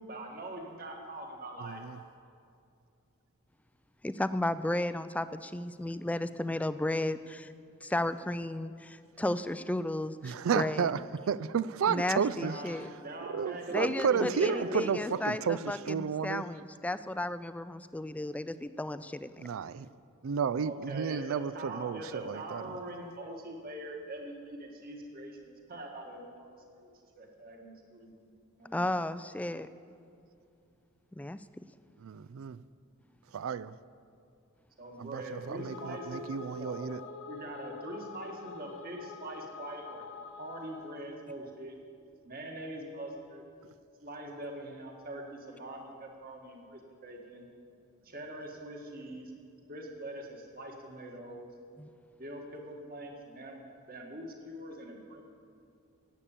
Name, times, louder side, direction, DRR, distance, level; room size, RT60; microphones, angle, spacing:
voice 1, 0.1-1.8 12.4-14.9 20.6-26.5 26.8-26.9 27.2-28.2 28.6-28.8 34.8-36.2 36.6-36.9 37.2-40.1 40.4-41.7 42.2-43.5 44.0-47.5 48.0-49.3 49.7-51.5 52.2-55.2, right 1 dB, 45° right, 1.9 m, -43 dB
voice 2, 1.6-2.0 10.2-12.6 13.3-16.4 19.4-19.9 20.2-22.8 32.0-32.6 33.3-33.7 35.0-37.0, right 6 dB, 65° right, 0.4 m, -32 dB
voice 3, 4.0-7.5 7.8-10.9 11.9-12.9 13.7-19.4 28.7-29.7 31.1-31.7 51.8-51.9, left 1 dB, 5° left, 0.3 m, -34 dB
sound 1, 35.3-41.1, left 5 dB, 70° left, 1.4 m, -46 dB
17.5 x 8.6 x 7.4 m
head